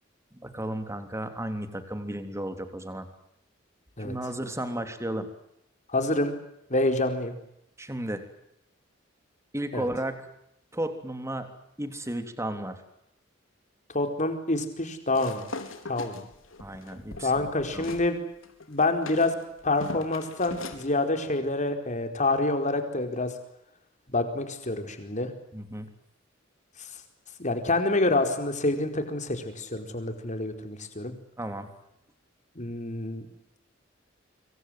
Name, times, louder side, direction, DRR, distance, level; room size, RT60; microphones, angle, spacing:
voice 1, 0.3-3.1 4.0-5.3 7.8-8.2 9.5-10.3 10.7-11.5 11.8-12.8 16.6-17.9 25.5-25.9 31.4-31.7, right 1 dB, 15° right, 8 dB, 3.4 m, -34 dB
voice 2, 5.9-6.3 6.7-7.3 9.7-9.9 13.9-15.4 15.9-16.2 17.2-18.2 18.7-19.3 19.6-23.3 24.1-25.3 26.8-26.9 27.4-31.1 32.6-33.2, left 2 dB, 40° left, 6 dB, 4.6 m, -27 dB
sound 1, 15.1-18.1 18.4-20.9, left 3 dB, 90° left, 4.1 m, -41 dB
26.0 x 25.0 x 7.8 m, 0.78 s
head